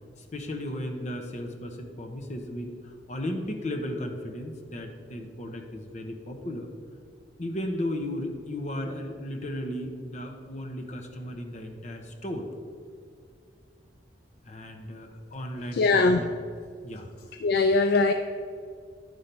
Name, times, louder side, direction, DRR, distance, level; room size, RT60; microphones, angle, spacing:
voice 1, 0.2-6.7 7.4-12.5 14.4-16.4 16.8-17.1, left 1 dB, 40° left, 3 dB, 0.9 m, -35 dB
voice 2, 15.7-16.2 17.4-18.1, left 3 dB, 60° left, 8 dB, 0.3 m, -21 dB
11.0 x 4.3 x 5.3 m, 2.2 s
head